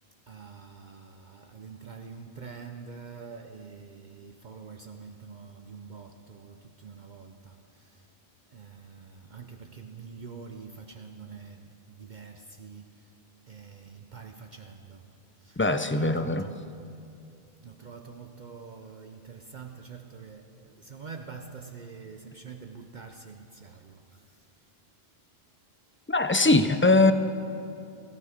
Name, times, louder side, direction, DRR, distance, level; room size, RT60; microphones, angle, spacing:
voice 1, 0.3-8.1 8.5-12.9 13.5-15.1 15.4-15.6 16.0-16.6 17.6-24.4, right 5 dB, 50° right, 4 dB, 0.8 m, -45 dB
voice 2, 15.6-16.5 26.1-27.1, left 2 dB, 20° left, 9 dB, 0.4 m, -21 dB
17.0 x 15.0 x 5.1 m, 2.5 s
omnidirectional pair, 1.0 m